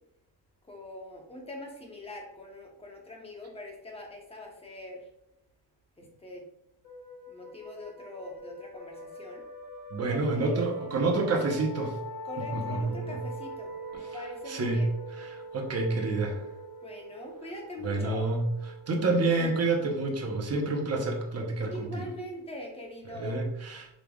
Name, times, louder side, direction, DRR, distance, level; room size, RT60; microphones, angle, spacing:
voice 1, 0.6-5.1 6.0-6.5 7.3-9.4 10.1-10.7 12.3-14.9 16.8-18.3 21.7-23.4, left 1 dB, 15° left, 0 dB, 0.9 m, -43 dB
sound 1, 6.8-22.2, equal, 90° left, 1.2 m, -44 dB
voice 2, 9.9-12.0 12.4-13.2 14.1-14.9 15.2-16.4 17.8-18.5 18.9-22.1 23.1-23.9, right 3 dB, 35° right, 1 dB, 0.9 m, -29 dB
5.1 x 3.3 x 2.3 m, 0.83 s
cardioid pair, 135°, 42 cm